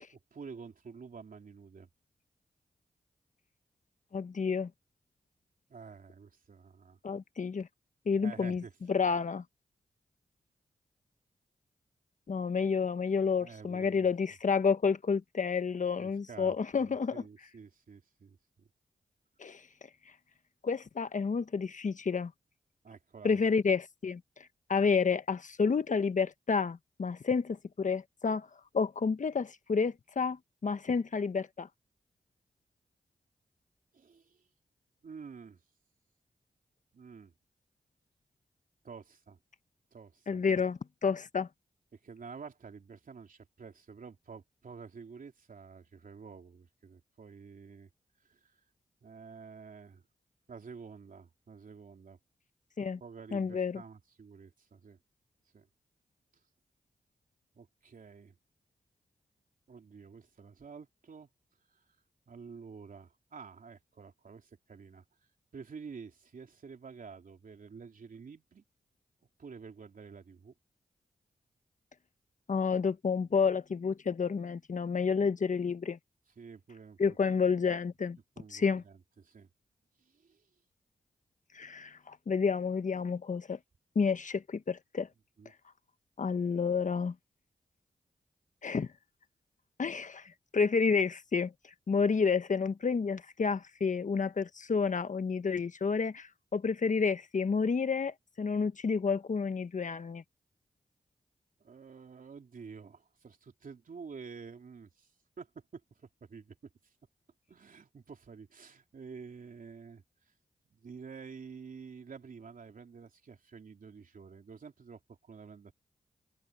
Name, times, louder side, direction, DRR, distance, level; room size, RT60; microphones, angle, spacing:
voice 1, 0.0-1.9 5.7-7.0 8.2-8.7 13.4-14.1 16.0-18.7 22.8-23.5 24.8-24.9 33.9-34.4 35.0-35.6 36.9-37.3 38.8-39.4 39.9-40.6 41.9-47.9 48.3-48.6 49.0-50.0 50.5-52.2 53.0-55.0 55.5-55.7 57.5-58.4 59.7-61.3 61.7-61.9 62.3-65.0 65.5-68.6 69.4-70.5 76.4-77.2 78.4-79.5 80.0-80.5 85.4-85.5 101.6-105.1 105.4-106.6 106.8-106.9 107.5-110.0 110.7-115.7, right 5 dB, 65° right, 3.5 m, -49 dB
voice 2, 4.1-4.7 7.0-7.7 8.0-8.6 8.9-9.4 12.3-17.2 19.4-19.6 20.6-22.3 23.2-24.2 24.7-28.5 28.7-31.7 40.3-41.5 52.8-53.0 53.3-53.8 72.5-76.0 77.0-78.2 78.5-78.8 81.5-83.6 83.9-85.1 86.2-87.1 88.6-88.9 89.8-91.5 91.9-100.2, left 5 dB, 55° left, 1.3 m, -30 dB
supercardioid pair, 40°, 15 cm